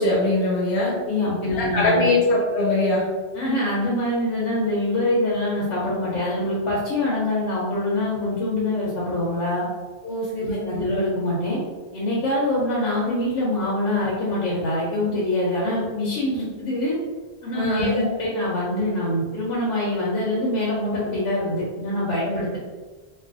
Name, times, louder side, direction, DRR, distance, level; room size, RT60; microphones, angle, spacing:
voice 1, 0.0-1.0 1.6-3.0 7.0-7.1 10.0-10.8 17.5-18.0 22.2-22.3, left 2 dB, 70° left, -4 dB, 1.1 m, -22 dB
voice 2, 1.0-2.1 3.3-9.6 10.4-11.6 11.9-17.0 17.4-22.6, left 1 dB, 90° left, -6 dB, 1.0 m, -24 dB
2.5 x 2.4 x 2.5 m, 1.4 s
omnidirectional pair, 1.2 m